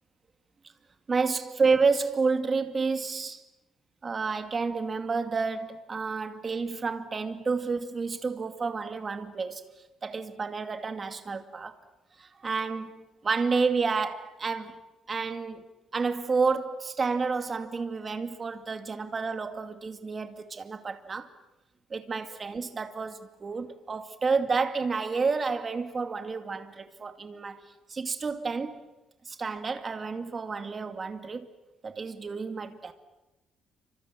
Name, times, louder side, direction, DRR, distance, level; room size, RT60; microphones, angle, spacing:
voice 1, 1.1-3.4 4.0-9.6 10.0-11.7 12.2-14.8 15.1-15.6 15.9-21.3 21.9-27.6 27.9-28.9 29.2-31.5 31.8-32.9, right 4 dB, 30° right, 2.4 m, -30 dB
29.5 x 26.0 x 7.7 m
cardioid pair, 140°, 0 cm